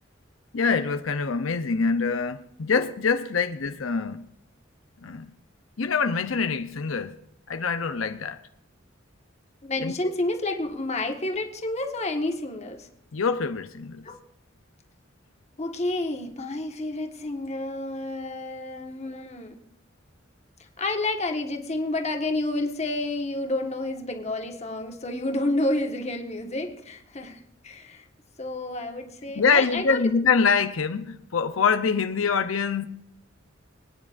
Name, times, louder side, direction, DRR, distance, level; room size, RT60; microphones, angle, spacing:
voice 1, 0.5-4.2 5.0-5.3 5.8-7.2 7.5-8.4 9.8-10.1 13.1-14.0 18.1-18.3 29.4-32.9, left 5 dB, 85° left, 0.7 m, -25 dB
voice 2, 9.6-12.9 14.0-14.2 15.6-19.5 20.6-28.1 28.4-30.1, left 2 dB, 35° left, 1.5 m, -30 dB
25.5 x 9.7 x 2.6 m
head